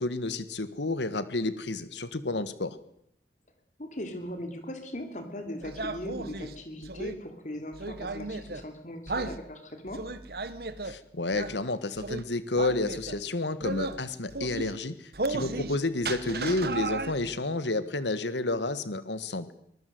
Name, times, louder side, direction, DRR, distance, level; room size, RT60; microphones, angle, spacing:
voice 1, 0.0-2.8 10.8-19.5, left 2 dB, 85° left, 13 dB, 1.7 m, -30 dB
voice 2, 3.8-10.0 15.3-15.6, left 1 dB, 45° left, 6 dB, 3.5 m, -39 dB
sound 1, 5.6-7.1 7.7-8.6 9.1-9.4 9.9-11.0 11.3-11.6 12.0-12.2 12.6-13.2 13.6-14.0 14.3-14.7 15.1-15.8 16.0-17.3, right 3 dB, 60° right, 1.6 m, -34 dB
24.0 x 21.5 x 7.9 m, 0.74 s
head